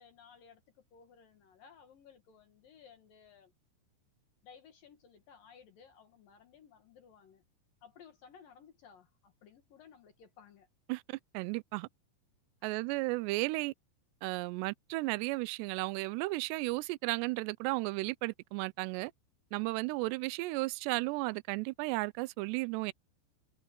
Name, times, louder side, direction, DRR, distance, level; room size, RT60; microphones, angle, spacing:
voice 1, 0.0-3.5 4.4-7.4 7.8-10.7 12.6-12.8, left 7 dB, 60° left, 2.8 m, -58 dB
voice 2, 11.3-11.9 12.6-13.7 14.2-19.1 19.5-22.9, right 22 dB, 85° right, 2.5 m, -34 dB
omnidirectional pair, 5.5 m